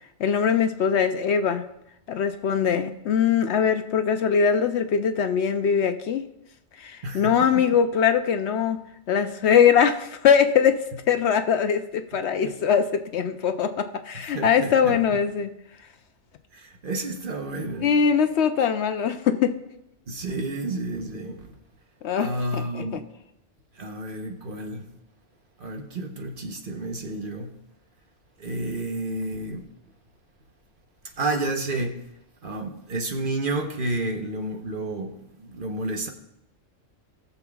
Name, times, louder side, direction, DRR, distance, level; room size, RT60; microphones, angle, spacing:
voice 1, 0.2-1.7 2.1-6.3 6.8-8.8 9.1-15.5 17.8-19.6 22.0-23.0, left 7 dB, 70° left, 0.8 m, -22 dB
voice 2, 7.0-7.3 12.4-12.5 14.1-15.0 16.5-17.9 20.1-21.5 22.2-23.0 23.8-24.8 25.6-27.5 28.4-29.7 31.2-32.0 32.4-36.1, right 2 dB, 45° right, 1.0 m, -30 dB
18.5 x 6.9 x 2.3 m
omnidirectional pair, 1.3 m